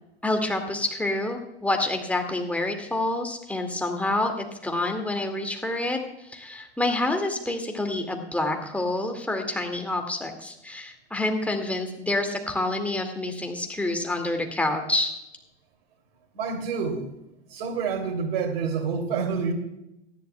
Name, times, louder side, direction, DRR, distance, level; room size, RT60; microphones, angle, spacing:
voice 1, 0.2-15.1, left 2 dB, 5° left, 3 dB, 2.2 m, -28 dB
voice 2, 16.3-17.1 17.5-19.5, right 5 dB, 60° right, 5 dB, 2.9 m, -28 dB
19.0 x 13.0 x 2.3 m, 0.86 s
hypercardioid pair, 90°, 33 cm